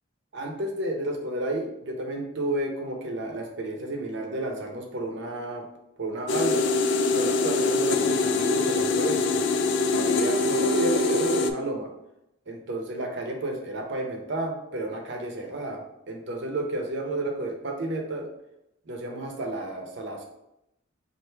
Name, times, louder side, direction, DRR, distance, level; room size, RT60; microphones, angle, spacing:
voice 1, 0.3-5.6 6.0-6.7 7.1-9.4 9.9-11.9 12.5-18.3 18.9-20.2, right 1 dB, 55° right, 2 dB, 0.7 m, -31 dB
sound 1, 6.3-11.5, left 3 dB, 60° left, 0.3 m, -24 dB
3.2 x 2.5 x 4.4 m, 0.85 s
head